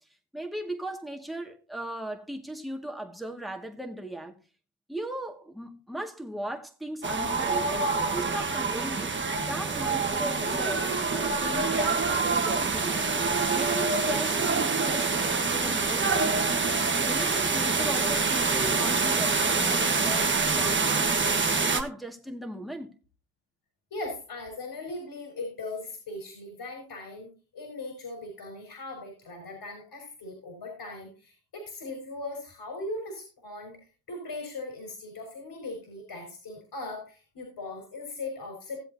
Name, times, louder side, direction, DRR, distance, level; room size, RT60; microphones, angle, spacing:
voice 1, 0.3-4.3 4.9-7.8 8.1-16.6 17.0-21.1 21.6-22.9, right 1 dB, ahead, 1.9 m, -38 dB
sound 1, 7.0-21.8, right 4 dB, 25° right, 1.4 m, -26 dB
voice 2, 23.9-33.8 34.1-38.8, left 2 dB, 50° left, 4.4 m, -39 dB
16.5 x 7.6 x 2.7 m
supercardioid pair, 60°, 50 cm